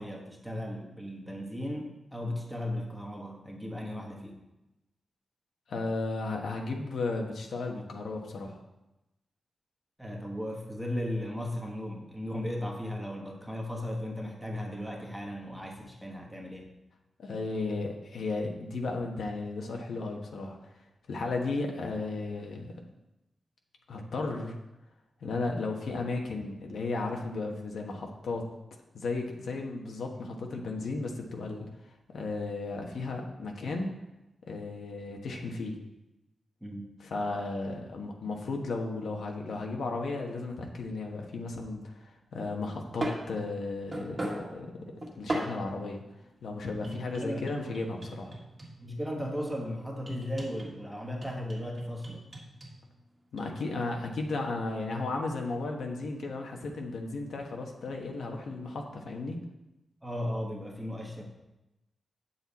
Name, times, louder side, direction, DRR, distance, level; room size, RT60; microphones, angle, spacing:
voice 1, 0.0-4.3 10.0-16.7 36.6-36.9 46.7-47.5 48.8-52.2 60.0-61.3, left 1 dB, ahead, 0 dB, 1.3 m, -36 dB
voice 2, 5.7-8.6 17.2-20.8 21.1-22.7 23.9-24.5 25.2-28.5 28.9-31.7 32.1-33.9 34.4-35.8 37.0-44.7 45.1-46.0 46.4-48.3 53.3-59.4, left 3 dB, 75° left, 1 dB, 1.2 m, -34 dB
sound 1, 42.3-45.8 46.8-49.0 50.1-50.8 51.2-52.7 53.4-53.5, right 1 dB, 25° right, 1.7 m, -38 dB
8.8 x 7.1 x 4.1 m, 0.97 s
wide cardioid pair, 165°, 0 cm